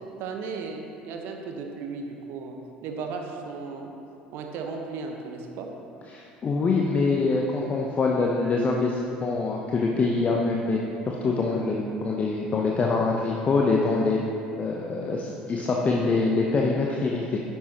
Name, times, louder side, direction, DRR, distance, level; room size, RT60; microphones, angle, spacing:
voice 1, 0.2-2.6 2.8-3.9 4.3-5.7, right 4 dB, 50° right, 3 dB, 1.1 m, -35 dB
voice 2, 6.1-10.8 11.1-14.2 14.6-17.4, left 3 dB, 30° left, -1 dB, 0.9 m, -24 dB
10.5 x 10.5 x 3.0 m, 2.8 s
figure-of-eight pair, 65°, 5 cm